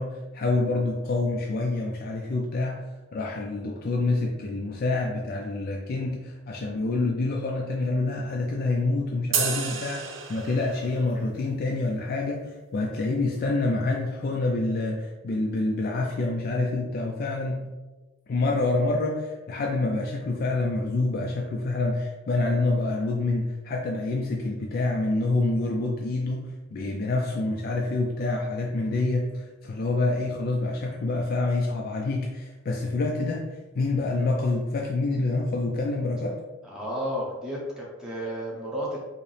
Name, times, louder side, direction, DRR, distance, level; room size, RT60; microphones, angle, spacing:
voice 1, 0.0-17.6 18.3-33.4 33.7-36.4, left 2 dB, 50° left, 0 dB, 0.3 m, -27 dB
sound 1, 9.3-10.9, right 6 dB, 75° right, 0.5 m, -30 dB
voice 2, 36.6-39.0, equal, 5° right, -5 dB, 0.7 m, -32 dB
4.8 x 2.0 x 3.1 m, 1.2 s
head